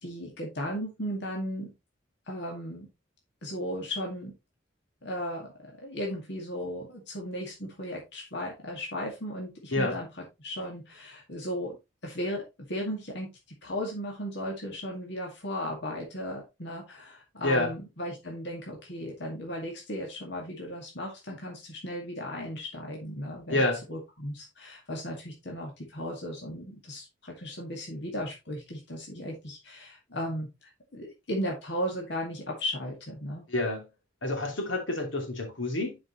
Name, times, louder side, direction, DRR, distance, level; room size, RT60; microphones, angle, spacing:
voice 1, 0.0-1.7 2.3-2.9 3.4-4.3 5.0-10.1 10.4-11.8 12.0-13.3 13.6-23.6 23.9-33.5, equal, 60° left, 2.1 m, -36 dB
voice 2, 23.5-23.8 33.5-33.9 34.2-36.0, left 2 dB, 80° left, 2.8 m, -28 dB
10.5 x 5.2 x 3.1 m
head